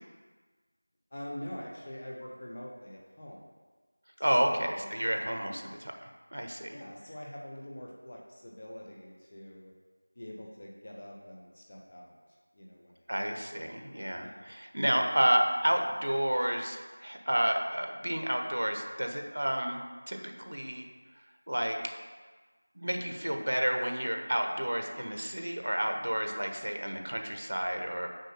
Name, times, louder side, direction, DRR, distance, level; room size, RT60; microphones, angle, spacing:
voice 1, 1.1-3.4 4.4-4.9 5.5-5.6 6.7-9.7 10.1-12.2 12.5-13.1 14.1-14.5, left 1 dB, 20° left, -2 dB, 0.7 m, -44 dB
voice 2, 4.2-5.9 6.3-6.8 13.1-19.8 20.1-20.9 21.5-21.8 22.7-28.1, equal, 55° right, 4 dB, 1.2 m, -30 dB
6.5 x 5.1 x 6.6 m, 1.4 s
figure-of-eight pair, 180°, 0 cm